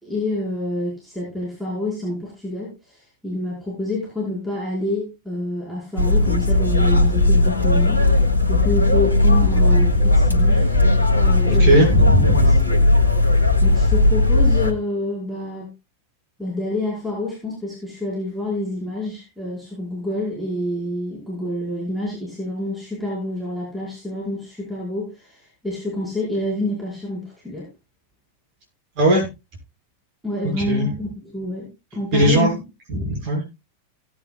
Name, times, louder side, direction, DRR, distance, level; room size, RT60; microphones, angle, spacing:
voice 1, 0.0-8.0 8.5-10.7 11.2-11.8 12.4-12.8 13.6-15.7 16.4-27.7 30.2-32.5 32.9-33.1, left 1 dB, 5° right, -6 dB, 5.0 m, -28 dB
sound 1, 6.0-14.7, left 2 dB, 80° left, 1.4 m, -16 dB
voice 2, 11.6-12.4 29.0-29.3 30.6-30.9 32.1-32.5 32.9-33.4, right 1 dB, 45° right, -1 dB, 6.1 m, -18 dB
17.5 x 8.6 x 2.4 m, 0.26 s
figure-of-eight pair, 90°, 0 cm